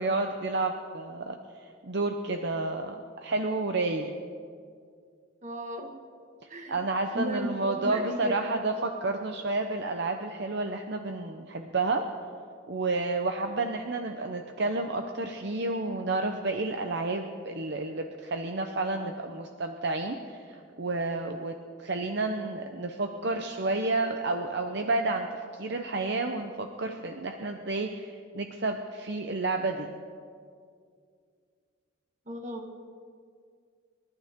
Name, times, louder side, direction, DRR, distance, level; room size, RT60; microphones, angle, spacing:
voice 1, 0.0-1.4 1.8-3.0 3.2-4.1 6.7-12.1 12.7-21.5 21.8-29.9, right 2 dB, 60° right, 5 dB, 0.8 m, -30 dB
voice 2, 5.4-5.9 6.5-6.8 7.1-8.6 32.3-32.6, equal, 40° right, 3 dB, 1.7 m, -35 dB
28.5 x 12.0 x 3.7 m, 2.2 s
head